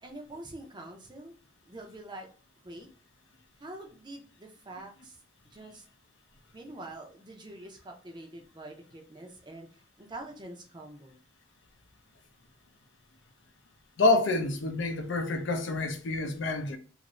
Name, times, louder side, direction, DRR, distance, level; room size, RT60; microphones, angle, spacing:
voice 1, 0.0-1.4 1.7-2.3 2.6-2.9 3.6-5.2 5.5-5.9 6.5-9.7 10.0-11.2, right 1 dB, 20° right, 0.5 m, -45 dB
voice 2, 14.0-16.8, left 2 dB, 65° left, 0.5 m, -27 dB
2.6 x 2.5 x 3.0 m
head